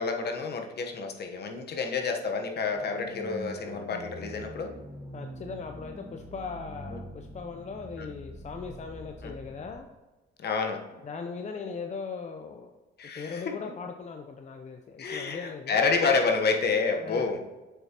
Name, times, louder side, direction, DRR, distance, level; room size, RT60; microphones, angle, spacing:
voice 1, 0.0-4.7 6.9-7.0 8.0-8.1 9.2-9.3 10.4-10.8 13.0-13.5 15.0-17.4, left 4 dB, 55° left, 4 dB, 1.1 m, -29 dB
sound 1, 2.7-9.8, right 1 dB, 15° right, 1.2 m, -44 dB
voice 2, 5.1-9.9 11.0-12.7 13.1-15.8 16.9-17.3, left 5 dB, 35° left, 4 dB, 0.6 m, -39 dB
7.2 x 5.8 x 2.9 m, 1.1 s
cardioid pair, 90°, 20 cm